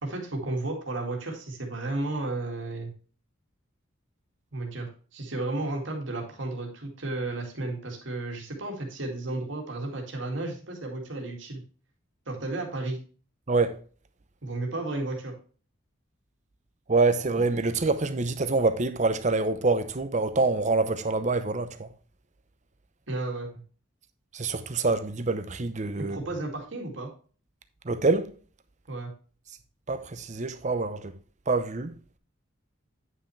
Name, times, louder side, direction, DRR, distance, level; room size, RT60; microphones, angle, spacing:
voice 1, 0.0-2.9 4.5-11.6 12.3-13.0 14.4-15.3 23.1-23.5 26.1-27.1 28.9-29.1, right 2 dB, 65° right, 2.2 m, -33 dB
voice 2, 13.5-13.8 16.9-21.9 24.3-26.2 27.8-28.3 29.9-31.1 31.5-32.0, right 3 dB, 35° right, 0.7 m, -26 dB
9.3 x 5.9 x 3.2 m
head